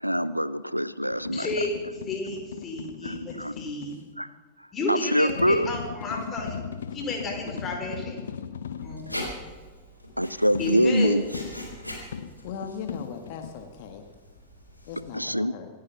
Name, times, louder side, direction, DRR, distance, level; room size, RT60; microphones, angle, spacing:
voice 1, 0.0-1.5 3.0-3.5 4.2-4.3 4.9-5.7 10.2-11.2 15.1-15.6, equal, 90° right, 18 dB, 0.5 m, -24 dB
sound 1, 1.1-4.0 5.3-9.0 10.5-13.5, left 7 dB, 65° left, 0.9 m, -38 dB
voice 2, 1.3-1.7 2.1-4.0 4.7-6.6 6.9-8.2 8.8-9.2 10.6-11.2, left 2 dB, 25° left, 1 dB, 4.6 m, -32 dB
Writing, 8.8-15.1, left 1 dB, 90° left, 4.3 m, -41 dB
voice 3, 12.4-14.0 14.8-15.7, left 7 dB, 50° left, 5 dB, 1.6 m, -38 dB
26.5 x 9.5 x 5.8 m, 1.4 s
figure-of-eight pair, 90°, 0 cm